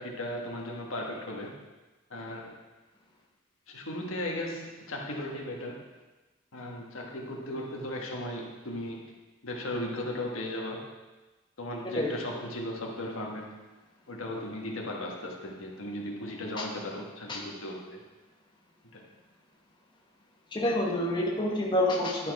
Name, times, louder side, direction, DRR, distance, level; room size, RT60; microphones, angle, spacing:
voice 1, 0.0-1.6 2.1-2.6 3.7-5.8 6.5-9.1 9.4-10.9 11.6-13.6 14.1-18.0 18.9-19.1, left 1 dB, 75° left, 0 dB, 1.3 m, -36 dB
voice 2, 20.5-22.3, left 1 dB, 20° left, -2 dB, 0.9 m, -27 dB
11.0 x 4.3 x 4.7 m, 1.2 s
head